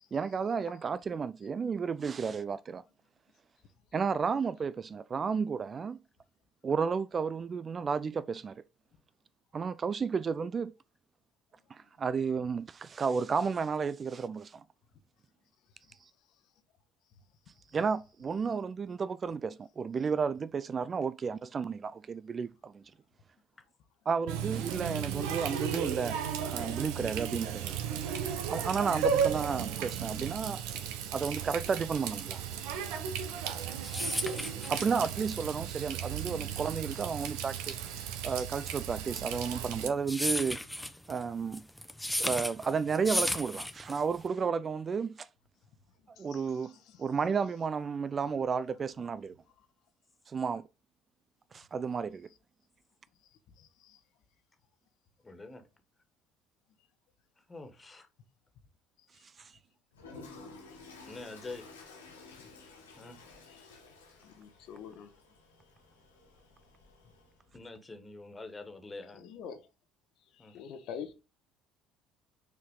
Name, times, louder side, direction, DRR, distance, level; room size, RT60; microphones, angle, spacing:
voice 1, 0.1-2.8 3.9-6.0 6.6-8.6 9.5-10.7 11.7-14.6 17.7-22.8 24.1-26.2 26.5-27.8 28.5-30.6 31.1-32.4 34.7-37.8 38.2-40.6 41.1-41.7 42.2-45.3 46.2-46.7 47.0-49.4 50.3-50.6 51.5-52.3 59.4-59.5, right 5 dB, 35° right, 0.3 m, -32 dB
Water tap faucet, 24.3-39.9, right 8 dB, 65° right, 0.9 m, -35 dB
voice 2, 30.4-31.2 34.5-35.1 55.2-55.6 57.5-58.1 61.1-61.6 63.0-63.2 67.5-69.2 70.4-70.6, left 3 dB, 20° left, 1.7 m, -46 dB
sound 1, 33.5-44.3, left 1 dB, 5° left, 0.9 m, -35 dB
Toilet flush, 59.9-67.4, left 3 dB, 80° left, 2.1 m, -53 dB
voice 3, 64.2-65.1 69.2-69.6 70.5-71.1, left 7 dB, 55° left, 1.1 m, -43 dB
7.0 x 4.6 x 3.9 m
figure-of-eight pair, 55°, 0 cm